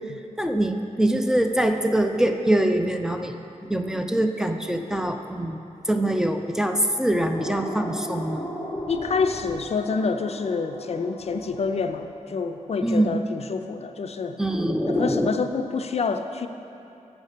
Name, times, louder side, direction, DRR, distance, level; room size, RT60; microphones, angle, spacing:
voice 1, 0.4-3.3 3.6-5.6 5.9-8.5 12.8-13.2 14.4-15.3, right 1 dB, 5° right, 5 dB, 0.4 m, -23 dB
sound 1, 7.3-13.2, left 1 dB, 35° left, 0.9 m, -36 dB
voice 2, 8.9-14.4 14.9-16.5, left 5 dB, 55° left, 7 dB, 0.4 m, -27 dB
7.2 x 5.5 x 6.5 m, 2.7 s
wide cardioid pair, 100°, 13 cm